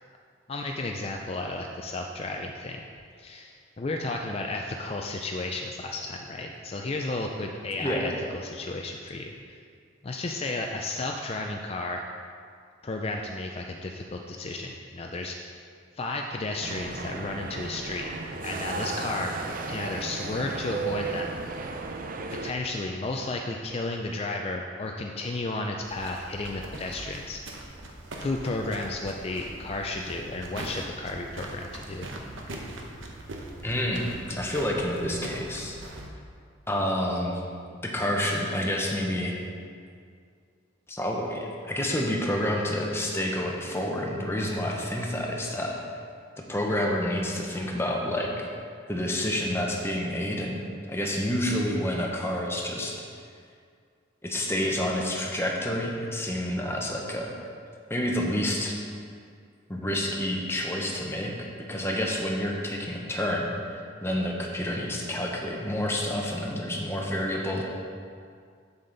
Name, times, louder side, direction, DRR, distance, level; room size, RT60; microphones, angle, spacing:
voice 1, 0.5-2.9 3.2-9.6 10.0-12.0 12.8-15.4 16.0-18.1 18.4-19.4 19.6-21.3 22.3-27.4 28.2-32.1, left 2 dB, 30° left, 2 dB, 0.4 m, -33 dB
sound 1, 16.6-22.5, right 3 dB, 45° right, 0.5 m, -34 dB
sound 2, 25.8-36.1, right 1 dB, 90° right, 0.9 m, -41 dB
voice 2, 33.6-35.8 36.7-37.4 37.8-39.4 40.9-45.8 46.5-48.5 48.9-53.0 54.2-57.3 57.9-58.7 59.7-67.6, left 1 dB, 15° left, -1 dB, 0.9 m, -29 dB
7.5 x 7.2 x 3.9 m, 2.2 s
head